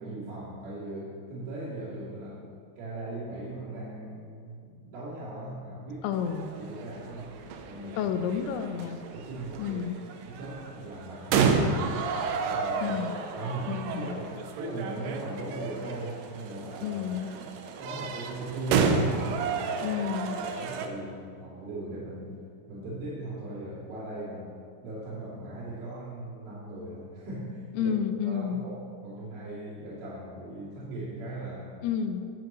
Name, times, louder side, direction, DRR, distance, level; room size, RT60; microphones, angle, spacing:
voice 1, 0.0-2.4 2.8-6.2 6.6-7.3 7.6-8.1 8.5-12.0 12.4-17.5 17.8-22.4 22.7-24.6 24.8-27.9 28.2-31.8, right 2 dB, 65° right, -12 dB, 4.5 m, -39 dB
voice 2, 6.0-6.5 8.0-9.0 9.6-10.0 12.8-13.2 13.7-14.2 16.8-17.3 19.8-20.4 27.7-28.7 31.8-32.2, left 8 dB, 80° left, 8 dB, 2.7 m, -30 dB
sound 1, 6.2-20.9, right 5 dB, 85° right, 1.9 m, -31 dB
19.5 x 8.0 x 3.1 m, 2.3 s
omnidirectional pair, 4.9 m